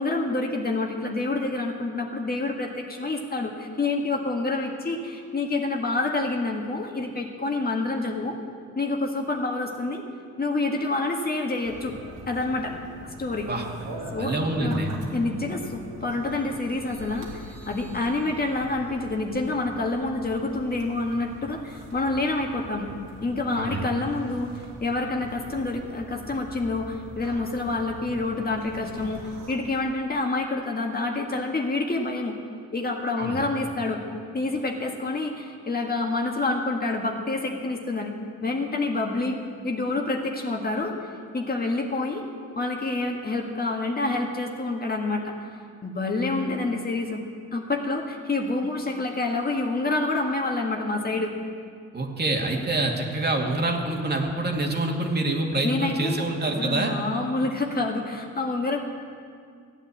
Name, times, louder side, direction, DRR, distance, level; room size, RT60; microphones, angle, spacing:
voice 1, 0.0-8.4 8.8-10.0 10.4-11.9 12.3-12.8 13.2-13.5 14.1-14.3 14.6-14.8 15.1-22.9 23.2-32.4 32.7-34.0 34.3-38.1 38.4-41.0 41.3-42.2 42.6-47.2 47.5-51.3 55.6-58.8, left 2 dB, 30° left, 1 dB, 1.8 m, -27 dB
sound 1, 11.6-29.6, right 2 dB, 80° right, 2.9 m, -43 dB
voice 2, 14.2-14.9 23.5-23.9 33.2-33.4 51.9-56.9, right 2 dB, 35° right, 1 dB, 2.4 m, -26 dB
15.0 x 9.1 x 8.6 m, 2.2 s
cardioid pair, 90°, 30 cm